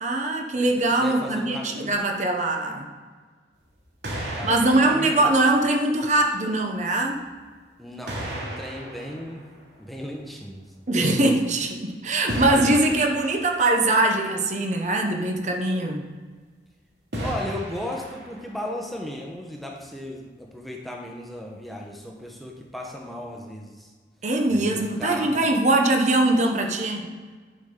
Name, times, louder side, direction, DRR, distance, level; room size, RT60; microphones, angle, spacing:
voice 1, 0.0-2.9 4.4-7.3 10.9-16.0 24.2-27.1, right 2 dB, 40° right, 3 dB, 0.8 m, -22 dB
voice 2, 1.0-2.0 4.3-5.3 7.8-9.5 9.8-10.6 17.2-23.9 24.5-25.4, left 1 dB, ahead, -1 dB, 0.9 m, -36 dB
sound 1, 3.5-3.8 4.0-6.2 7.2-7.3 8.1-10.2 12.3-13.9 17.1-18.7, right 1 dB, 80° right, 2.4 m, -34 dB
11.0 x 6.0 x 3.8 m, 1.5 s
head